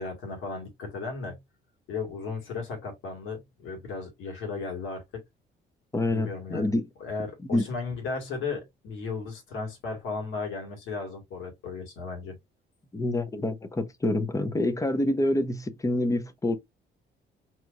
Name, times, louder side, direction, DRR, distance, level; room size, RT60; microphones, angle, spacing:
voice 1, 0.0-1.4 1.9-5.0 6.1-6.7 7.0-12.4, left 4 dB, 85° left, 2.0 m, -35 dB
voice 2, 5.9-6.9 7.5-7.6 12.9-16.6, left 1 dB, 15° left, 0.7 m, -27 dB
4.4 x 2.9 x 2.5 m
cardioid pair, 90°, 20 cm